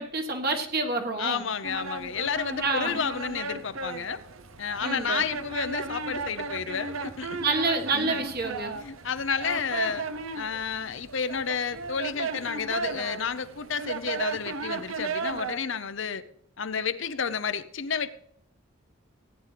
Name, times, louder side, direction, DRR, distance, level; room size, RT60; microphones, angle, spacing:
voice 1, 0.0-1.4 2.6-3.0 4.8-5.2 7.4-8.7, right 3 dB, 45° right, 3 dB, 1.6 m, -28 dB
voice 2, 1.2-4.2 4.6-7.4 7.9-8.2 8.7-10.0 10.4-16.2 16.6-18.1, left 6 dB, 60° left, 12 dB, 0.7 m, -31 dB
sound 1, 1.6-15.6, right 4 dB, 75° right, 0.8 m, -35 dB
17.5 x 10.0 x 3.4 m, 0.67 s
head